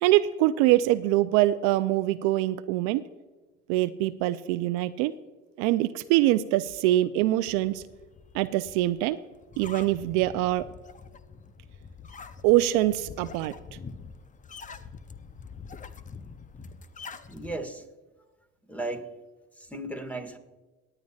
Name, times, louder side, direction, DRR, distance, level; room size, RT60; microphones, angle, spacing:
voice 1, 0.0-3.0 3.7-5.1 5.6-7.8 8.3-9.2 9.6-10.7 12.4-13.5, right 15 dB, 80° right, 13 dB, 0.5 m, -24 dB
sound 1, 7.6-17.6, left 5 dB, 25° left, 0.7 m, -45 dB
voice 2, 17.3-17.9 18.7-19.1 19.6-20.4, right 2 dB, 5° left, 6 dB, 1.7 m, -35 dB
18.0 x 9.7 x 2.4 m, 1.2 s
supercardioid pair, 75°, 31 cm